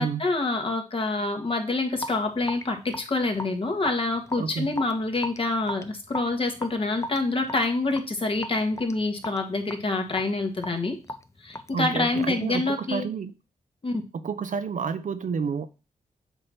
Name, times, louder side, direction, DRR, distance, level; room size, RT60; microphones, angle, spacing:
voice 1, 0.0-11.0 11.4-13.1 13.8-14.0, left 2 dB, 40° left, 1.7 m, -27 dB
Raindrop / Drip, 2.0-12.5, left 1 dB, 20° left, 0.7 m, -39 dB
voice 2, 4.4-4.7 11.7-13.3 14.1-15.7, right 6 dB, 60° right, 0.7 m, -30 dB
7.8 x 3.0 x 5.9 m
cardioid pair, 65°, 15 cm